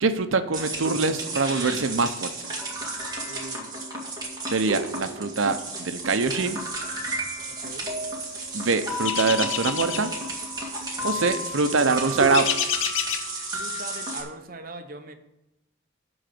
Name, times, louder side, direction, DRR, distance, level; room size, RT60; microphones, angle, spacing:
voice 1, 0.0-2.3 4.5-6.6 8.5-10.1 11.0-12.5, right 4 dB, 90° right, 9 dB, 0.7 m, -24 dB
sound 1, 0.5-14.2, right 1 dB, 20° right, 2.0 m, -32 dB
voice 2, 3.2-3.8 7.5-7.9 10.9-11.4 13.5-15.1, right 2 dB, 45° right, 6 dB, 0.9 m, -41 dB
sound 2, 9.0-10.1 12.3-13.3, left 8 dB, 85° left, 0.8 m, -28 dB
11.5 x 4.0 x 7.8 m, 0.90 s
head